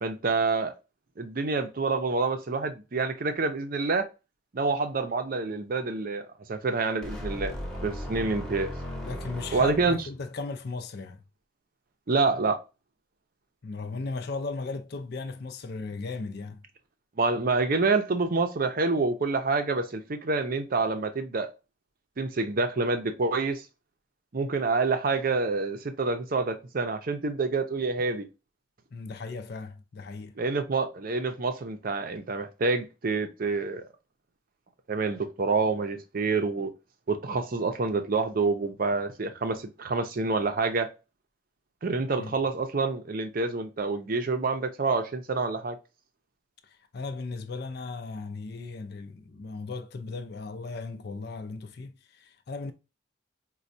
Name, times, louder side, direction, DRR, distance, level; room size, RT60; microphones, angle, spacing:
voice 1, 0.0-0.7 1.2-4.1 4.5-7.5 7.8-8.7 9.5-10.0 12.1-12.6 17.2-21.5 22.2-23.6 24.3-28.3 30.4-33.8 34.9-36.7 37.1-40.9 41.8-45.8, right 3 dB, 50° right, 0.6 m, -27 dB
sound 1, 7.0-10.3, equal, 5° left, 0.8 m, -37 dB
voice 2, 9.0-11.2 13.6-16.6 28.9-30.3 42.1-42.4 46.6-52.7, left 3 dB, 55° left, 0.5 m, -36 dB
4.3 x 2.2 x 2.5 m
head